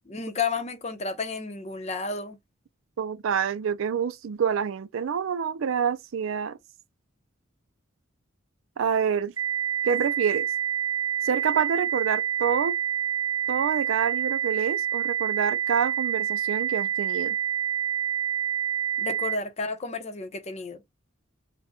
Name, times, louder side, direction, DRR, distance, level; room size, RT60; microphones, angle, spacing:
voice 1, 0.1-2.4 19.0-20.8, left 4 dB, 35° left, 0.7 m, -32 dB
voice 2, 3.0-6.6 8.8-9.3 9.8-10.5 11.2-12.8 13.5-17.4, right 7 dB, 75° right, 0.4 m, -27 dB
sound 1, 9.4-19.4, right 9 dB, 15° right, 0.5 m, -27 dB
3.9 x 2.2 x 3.5 m
head